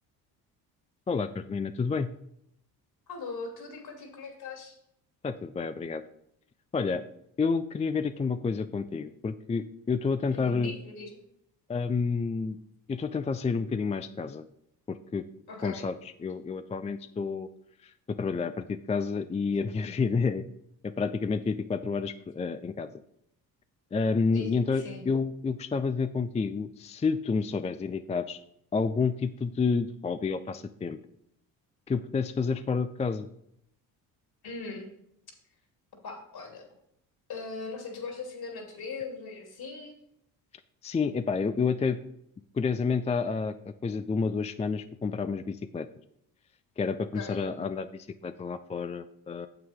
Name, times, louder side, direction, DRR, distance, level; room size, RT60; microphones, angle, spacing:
voice 1, 1.1-2.1 5.2-6.0 6.7-7.0 7.4-10.7 11.7-12.6 12.9-14.4 14.9-15.2 15.6-15.9 16.2-17.5 17.8-20.4 20.8-22.9 23.9-28.4 28.7-31.0 31.9-33.3 40.8-42.0 42.5-45.9 46.8-49.5, left 5 dB, 15° left, 11 dB, 0.4 m, -29 dB
voice 2, 3.1-4.8 10.3-11.2 15.5-15.9 24.3-25.0 34.4-34.9 36.0-36.7 37.3-40.0 47.1-47.5, left 4 dB, 55° left, 1 dB, 3.3 m, -40 dB
8.8 x 7.6 x 3.7 m, 0.74 s
supercardioid pair, 65°, 43 cm